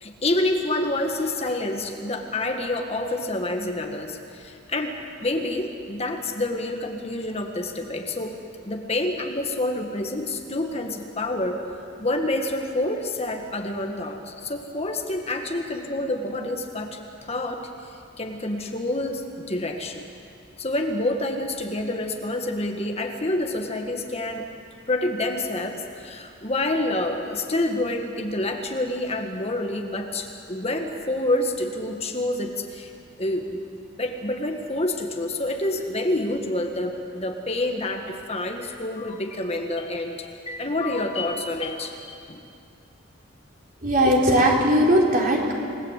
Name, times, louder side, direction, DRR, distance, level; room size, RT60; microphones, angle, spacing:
voice 1, 0.0-8.4 8.6-11.6 12.0-20.1 20.6-24.5 24.9-32.9 33.2-42.4, left 1 dB, 30° left, 3 dB, 1.6 m, -28 dB
voice 2, 43.8-45.5, equal, 40° right, -1 dB, 3.9 m, -19 dB
28.5 x 19.5 x 8.2 m, 2.5 s
head